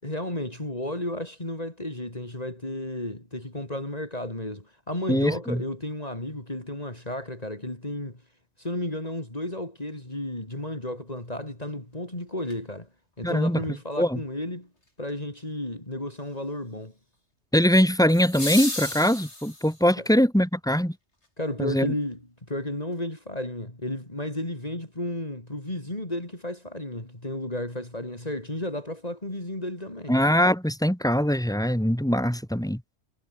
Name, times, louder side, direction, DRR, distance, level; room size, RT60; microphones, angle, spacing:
voice 1, 0.0-8.2 8.6-12.9 13.2-14.7 15.0-16.9 20.0-20.1 21.4-30.2, left 1 dB, 35° left, 4.8 m, -33 dB
voice 2, 5.1-5.6 13.2-13.6 14.0-14.2 17.5-20.9 21.6-21.9 30.1-32.8, equal, 5° left, 5.7 m, -22 dB
sound 1, 12.5-12.6 18.1-19.9 22.1-22.2, left 1 dB, 85° left, 7.6 m, -33 dB
omnidirectional pair, 1.2 m